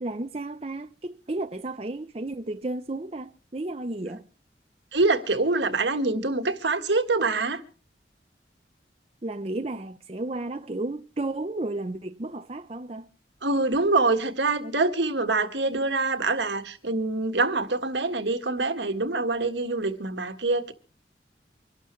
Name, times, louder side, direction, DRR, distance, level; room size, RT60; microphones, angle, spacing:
voice 1, 0.0-4.2 9.2-13.1, right 2 dB, 35° right, 0.6 m, -33 dB
voice 2, 4.9-7.6 13.4-20.7, right 3 dB, 80° right, 1.6 m, -25 dB
25.0 x 12.0 x 3.2 m
head